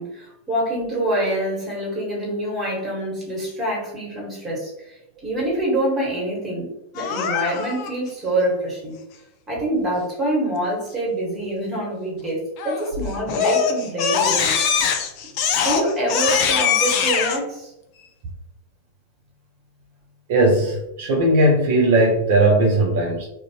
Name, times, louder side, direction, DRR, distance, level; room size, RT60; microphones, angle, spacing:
voice 1, 0.0-4.9 5.2-9.0 9.5-14.6 15.5-17.7, right 1 dB, 25° right, -3 dB, 1.3 m, -25 dB
Crying sobbing, 7.0-7.9 12.6-12.9 13.3-17.4, left 7 dB, 50° left, 0.4 m, -22 dB
voice 2, 20.3-23.3, right 1 dB, 60° right, -2 dB, 0.5 m, -18 dB
2.5 x 2.1 x 2.7 m, 0.85 s
hypercardioid pair, 95°, 0 cm